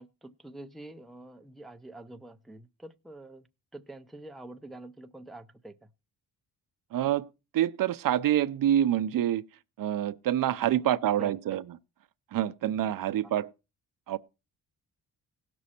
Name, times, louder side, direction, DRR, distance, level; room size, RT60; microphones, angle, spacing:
voice 1, 0.0-3.5 3.7-5.9 11.2-11.6, right 1 dB, ahead, 0.5 m, -46 dB
voice 2, 6.9-7.3 7.5-9.4 9.8-11.6 12.3-13.5 14.1-14.2, right 11 dB, 60° right, 0.6 m, -26 dB
17.5 x 6.2 x 4.2 m
cardioid pair, 140°, 38 cm